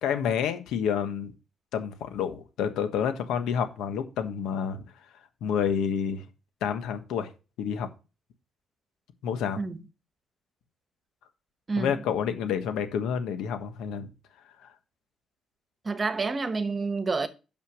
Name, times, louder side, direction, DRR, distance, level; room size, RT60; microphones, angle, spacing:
voice 1, 0.0-1.3 1.7-4.8 5.4-6.2 6.6-7.3 7.6-7.9 9.2-9.6 11.8-14.1, left 7 dB, 85° left, 1.3 m, -29 dB
voice 2, 15.8-17.3, right 4 dB, 30° right, 1.2 m, -28 dB
6.8 x 5.8 x 6.2 m
cardioid pair, 90°, 0 cm